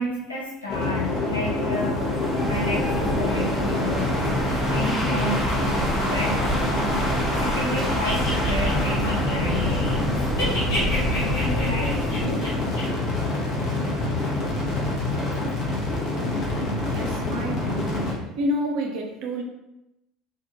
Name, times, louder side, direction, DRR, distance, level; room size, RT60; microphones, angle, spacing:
voice 1, 0.0-2.1 2.5-4.1 4.6-6.9 7.4-12.4, equal, 90° left, -5 dB, 0.5 m, -32 dB
sound 1, 0.7-18.1, left 2 dB, 40° left, 0.7 m, -26 dB
sound 2, 1.8-12.7, equal, 5° right, 0.6 m, -28 dB
sound 3, 7.9-10.0 10.3-12.8, equal, 70° left, 1.0 m, -31 dB
voice 2, 16.8-18.1 18.4-19.4, equal, 55° right, 1 dB, 0.4 m, -29 dB
2.2 x 2.1 x 2.8 m, 0.89 s
figure-of-eight pair, 65°, 0 cm